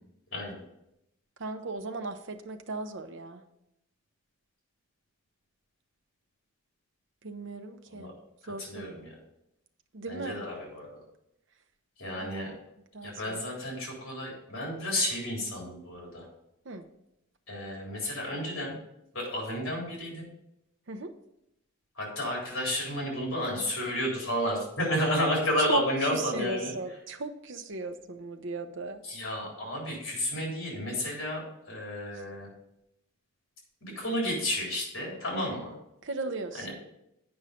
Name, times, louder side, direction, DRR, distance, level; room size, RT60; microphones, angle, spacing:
voice 1, 1.4-3.4 7.2-8.1 8.5-9.0 9.9-10.4 12.2-12.6 12.9-13.4 16.6-16.9 20.9-21.1 25.6-25.8 26.1-29.0 36.0-36.7, right 3 dB, 60° right, 7 dB, 0.7 m, -36 dB
voice 2, 8.4-9.1 10.1-11.0 12.0-12.5 13.0-16.3 17.5-18.8 19.1-20.3 22.0-26.7 29.0-32.5 33.8-35.7 36.5-36.7, left 1 dB, 65° left, -2 dB, 3.7 m, -32 dB
8.8 x 5.5 x 5.0 m, 0.82 s
head